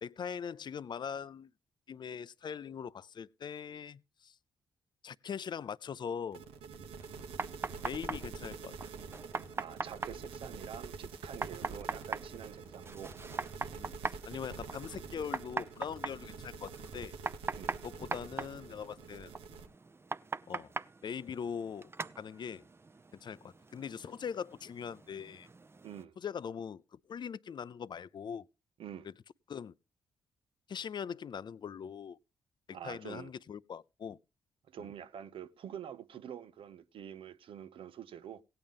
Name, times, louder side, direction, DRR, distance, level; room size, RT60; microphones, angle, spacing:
voice 1, 0.0-1.5 1.9-4.3 5.0-6.4 7.8-8.7 13.8-17.1 17.8-19.3 20.5-20.7 21.0-21.9 22.2-22.6 23.2-25.5 26.2-26.8 27.1-28.4 29.5-29.7 30.7-32.2 32.7-34.2 34.8-34.9, left 7 dB, 50° left, 0.5 m, -41 dB
sound 1, 6.3-19.7, right 5 dB, 85° right, 1.1 m, -46 dB
sound 2, 7.0-26.0, right 3 dB, 25° right, 0.6 m, -43 dB
voice 2, 9.6-13.2 17.5-17.8 25.8-26.2 28.8-29.1 32.7-33.3 34.7-38.4, right 9 dB, 70° right, 0.7 m, -46 dB
16.5 x 8.8 x 3.6 m
supercardioid pair, 50°, 10 cm